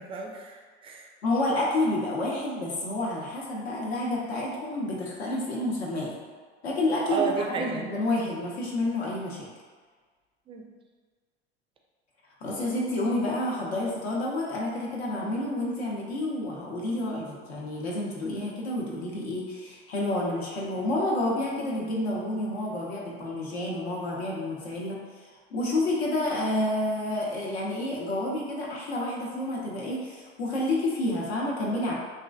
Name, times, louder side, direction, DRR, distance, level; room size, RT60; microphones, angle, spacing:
voice 1, 0.0-1.1 7.1-7.9 10.5-10.7, right 5 dB, 20° right, 1 dB, 0.3 m, -32 dB
voice 2, 1.2-6.2 6.6-9.5 12.4-31.9, left 1 dB, 75° left, -3 dB, 0.7 m, -29 dB
2.9 x 2.5 x 2.3 m, 1.5 s
figure-of-eight pair, 75°, 32 cm